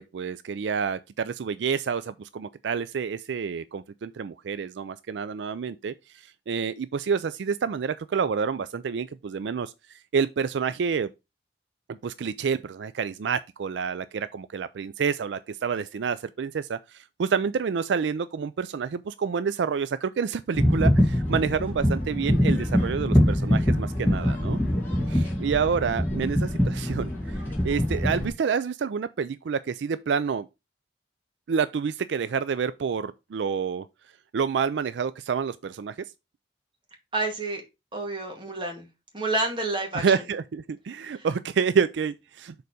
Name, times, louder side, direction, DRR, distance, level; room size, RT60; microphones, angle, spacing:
voice 1, 0.0-11.1 11.9-24.6 25.1-27.4 27.6-30.5 31.5-33.9 34.3-36.0 39.9-42.5, right 6 dB, 80° right, 0.4 m, -28 dB
sound 1, 20.5-28.3, equal, 10° left, 2.5 m, -24 dB
voice 2, 37.1-37.6 37.9-38.9 39.1-40.0 41.1-41.3, right 2 dB, 30° right, 2.0 m, -29 dB
6.8 x 4.0 x 4.9 m
head